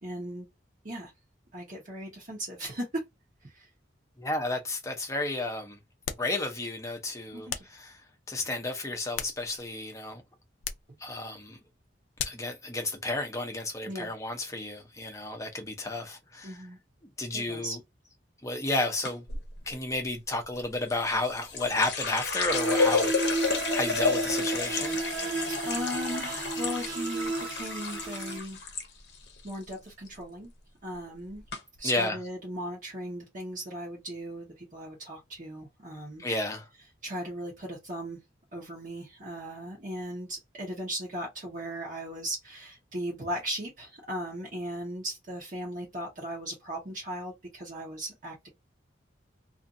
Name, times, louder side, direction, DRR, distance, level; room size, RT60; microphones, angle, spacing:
voice 1, 0.0-0.5 0.8-1.1 1.5-3.0 3.4-3.7 7.3-7.7 13.9-14.1 16.4-16.8 17.3-17.8 25.4-28.6 29.4-30.5 30.8-31.4 31.8-36.2 37.0-38.2 38.5-48.5, equal, 40° right, 0.9 m, -37 dB
voice 2, 4.2-5.8 6.2-8.0 8.3-10.2 11.0-11.6 12.2-16.6 17.2-17.8 18.4-19.2 19.7-23.1 23.7-25.0 31.8-32.2 36.2-36.7, left 2 dB, 15° left, 0.6 m, -32 dB
sound 1, 6.0-6.4 7.5-7.8 8.9-9.8 10.6-10.9 12.2-12.5, left 9 dB, 90° left, 0.4 m, -37 dB
sound 2, 19.0-19.4 20.9-28.9 29.1-29.7 30.1-30.4 31.1-31.2 31.5-31.6, left 4 dB, 60° left, 0.7 m, -31 dB
sound 3, 22.5-28.4, right 3 dB, 75° right, 0.6 m, -33 dB
2.5 x 2.5 x 2.5 m
head